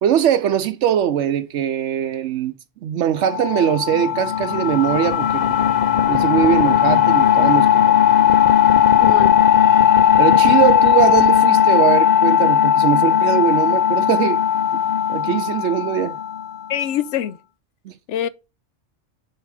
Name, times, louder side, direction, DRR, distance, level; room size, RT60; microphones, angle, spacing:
voice 1, 0.0-2.5 2.8-5.5 6.1-8.0 10.2-14.4 15.1-16.2 17.8-17.9, right 10 dB, 80° right, 0.9 m, -21 dB
sound 1, 3.2-16.7, left 9 dB, 45° left, 0.6 m, -16 dB
voice 2, 9.0-9.3 16.7-17.4 18.1-18.3, left 10 dB, 80° left, 0.9 m, -24 dB
Wind instrument woodwind instrument, 9.4-13.2, left 3 dB, 25° left, 2.9 m, -43 dB
7.0 x 4.8 x 4.8 m
omnidirectional pair, 1.2 m